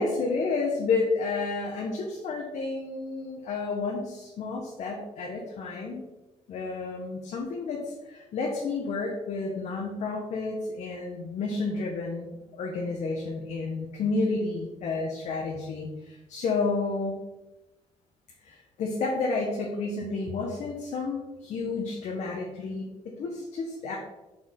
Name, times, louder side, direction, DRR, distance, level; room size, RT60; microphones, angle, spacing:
voice 1, 0.0-6.0 6.5-17.2 18.4-24.0, left 3 dB, 70° left, -1 dB, 1.0 m, -31 dB
6.2 x 4.6 x 3.7 m, 1.0 s
wide cardioid pair, 175°, 12 cm